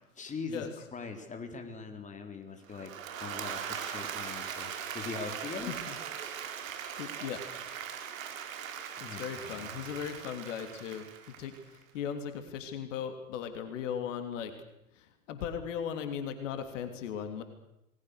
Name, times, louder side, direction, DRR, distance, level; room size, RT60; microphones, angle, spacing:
voice 1, 0.0-2.9 3.2-5.8 9.0-9.9, left 4 dB, 15° left, 5 dB, 3.9 m, -42 dB
Applause / Crowd, 2.7-11.8, right 8 dB, 65° right, 4.4 m, -40 dB
voice 2, 7.0-7.4 9.0-11.1 11.4-14.5 14.9-17.4, left 8 dB, 60° left, 7 dB, 3.3 m, -37 dB
29.5 x 20.5 x 6.6 m, 0.87 s
figure-of-eight pair, 95°, 43 cm